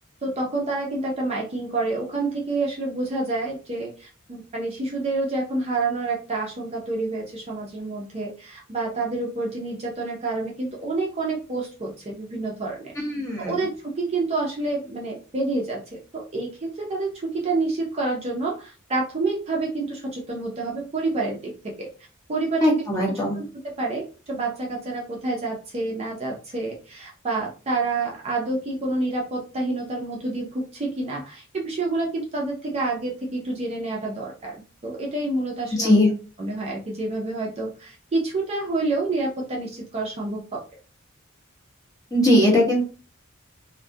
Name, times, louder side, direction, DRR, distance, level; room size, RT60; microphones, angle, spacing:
voice 1, 0.2-12.9 13.4-21.9 22.3-22.7 23.1-34.6 34.8-36.0 36.4-40.6, right 3 dB, 30° right, -2 dB, 0.4 m, -28 dB
voice 2, 13.0-13.6 22.6-23.4 35.8-36.1 42.1-42.8, left 1 dB, 15° left, -3 dB, 0.9 m, -19 dB
2.3 x 2.1 x 2.6 m, 0.36 s
head